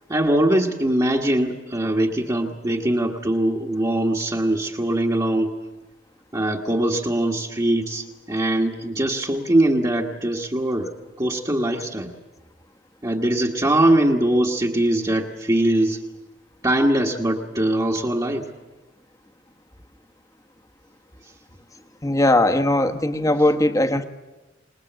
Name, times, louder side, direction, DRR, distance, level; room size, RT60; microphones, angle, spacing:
voice 1, 0.1-5.5 6.3-10.9 11.2-12.1 13.0-16.0 16.6-18.5, right 1 dB, 20° right, -2 dB, 1.5 m, -22 dB
voice 2, 22.0-24.0, left 1 dB, 15° left, 8 dB, 1.2 m, -19 dB
26.5 x 20.5 x 8.0 m, 1.1 s
head